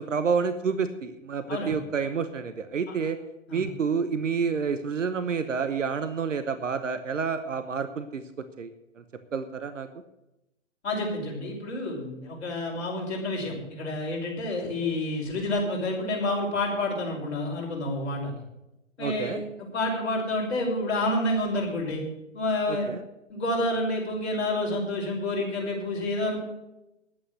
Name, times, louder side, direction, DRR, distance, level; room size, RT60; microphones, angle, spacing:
voice 1, 0.0-3.2 3.5-8.2 8.6-9.0 9.3-9.9 19.0-19.4 22.7-23.0, right 5 dB, 75° right, 10 dB, 1.1 m, -29 dB
voice 2, 10.8-18.3 19.0-22.0 22.3-22.9 23.3-26.4, left 1 dB, 60° left, -1 dB, 5.5 m, -29 dB
11.0 x 8.7 x 7.9 m, 0.91 s
figure-of-eight pair, 125°, 38 cm